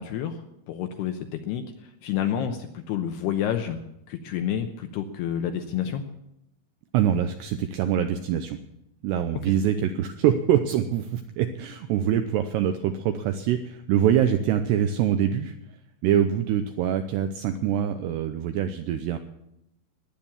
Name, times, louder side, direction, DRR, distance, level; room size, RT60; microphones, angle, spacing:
voice 1, 0.0-6.0, left 9 dB, 80° left, 6 dB, 2.5 m, -29 dB
voice 2, 6.9-8.6 9.0-15.5 16.0-19.2, right 9 dB, 80° right, 8 dB, 2.4 m, -24 dB
15.5 x 10.5 x 7.1 m, 0.82 s
omnidirectional pair, 5.6 m